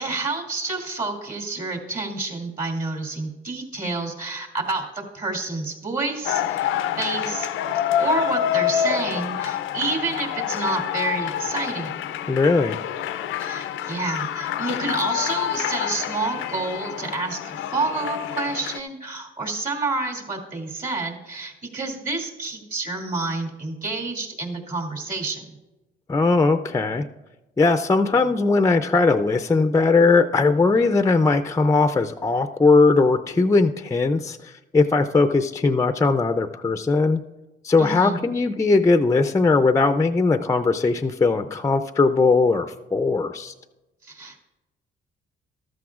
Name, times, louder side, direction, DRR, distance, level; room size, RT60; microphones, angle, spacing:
voice 1, 0.0-6.7 7.0-7.5 7.7-12.0 13.4-25.6 37.8-38.2 44.0-44.4, right 3 dB, 45° right, 1 dB, 2.6 m, -29 dB
sound 1, 6.2-18.8, left 10 dB, 85° left, 0.5 m, -27 dB
voice 2, 12.3-12.8 26.1-27.0 27.6-37.2 37.6-43.5, left 3 dB, 15° left, 8 dB, 0.4 m, -19 dB
14.0 x 12.5 x 2.4 m, 1.1 s
cardioid pair, 90°, 20 cm